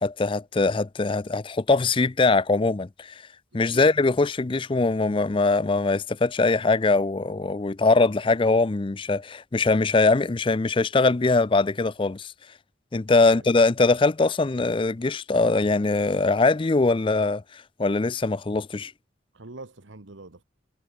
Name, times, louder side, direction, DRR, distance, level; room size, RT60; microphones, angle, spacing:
voice 1, 0.0-3.2 3.5-12.3 12.9-18.9, left 3 dB, 25° left, 0.4 m, -22 dB
voice 2, 3.5-3.9 13.2-13.4 19.3-20.4, right 2 dB, 75° right, 1.5 m, -44 dB
head